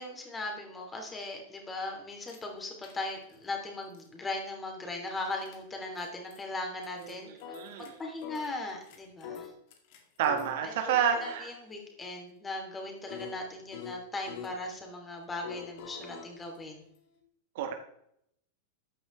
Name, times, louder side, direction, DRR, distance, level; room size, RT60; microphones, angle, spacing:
voice 1, 0.0-7.3 7.8-9.5 11.0-16.8, left 2 dB, 15° left, 2 dB, 3.1 m, -38 dB
sound 1, 2.2-2.4 2.8-3.4 3.9-4.0 5.2-5.6 6.0-6.1 6.3-6.4 6.8-7.9 8.2-10.6 10.9-14.6 15.4-17.2, left 7 dB, 50° left, 2.1 m, -46 dB
voice 2, 7.0-8.0 10.2-11.5 17.5-17.7, right 8 dB, 55° right, 6 dB, 1.5 m, -30 dB
13.5 x 10.0 x 3.4 m, 0.73 s
figure-of-eight pair, 90°, 0 cm